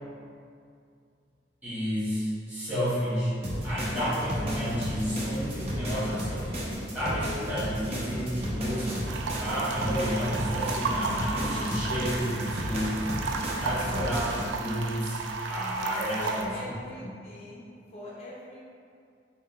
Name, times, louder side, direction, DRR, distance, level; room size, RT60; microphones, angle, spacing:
voice 1, 1.6-6.6 6.9-8.9 9.4-13.0 13.6-15.2 15.5-16.5, equal, 10° right, -11 dB, 1.4 m, -31 dB
sound 1, 3.4-14.5, equal, 35° right, 0.8 m, -33 dB
sound 2, 9.0-16.5, right 4 dB, 90° right, 0.3 m, -34 dB
voice 2, 16.1-18.6, left 1 dB, 35° left, -6 dB, 0.5 m, -43 dB
4.2 x 2.2 x 4.2 m, 2.3 s
head